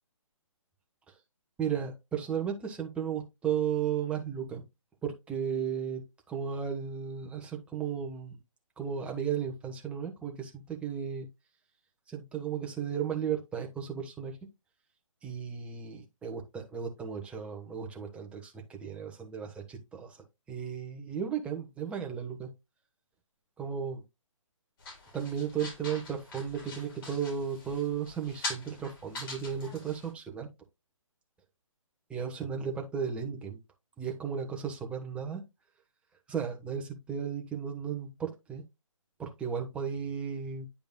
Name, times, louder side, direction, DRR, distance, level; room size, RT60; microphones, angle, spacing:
voice 1, 1.6-4.6 5.0-6.0 6.3-8.4 8.8-11.3 12.1-14.4 15.2-20.2 20.5-22.5 23.6-24.0 25.1-30.5 32.1-33.6 34.0-35.4 36.3-38.6 39.2-40.7, right 7 dB, 5° right, 1.0 m, -35 dB
sound 1, 24.8-30.1, left 3 dB, 45° left, 4.4 m, -43 dB
9.5 x 5.1 x 2.2 m
figure-of-eight pair, 140°, 17 cm